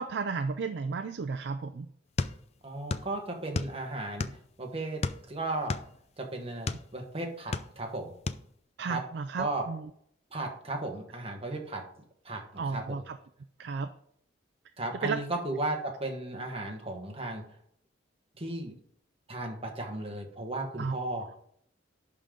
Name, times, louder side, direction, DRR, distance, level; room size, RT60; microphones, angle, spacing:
voice 1, 0.0-1.9 8.8-9.9 12.6-13.2 13.6-13.9 15.0-15.2 20.8-21.3, right 4 dB, 65° right, 9 dB, 0.4 m, -33 dB
sound 1, 2.2-3.1 3.4-4.5 5.0-6.9 7.3-8.0 8.3-8.5, left 3 dB, 35° left, 0.4 m, -33 dB
voice 2, 2.6-4.3 4.6-5.0 5.3-5.7 6.2-8.1 8.9-9.0 9.4-9.7 10.3-11.8 12.2-13.0 14.8-17.4 18.4-18.7 19.3-21.2, right 2 dB, 30° right, 2 dB, 1.4 m, -35 dB
11.0 x 3.8 x 5.1 m, 0.66 s
head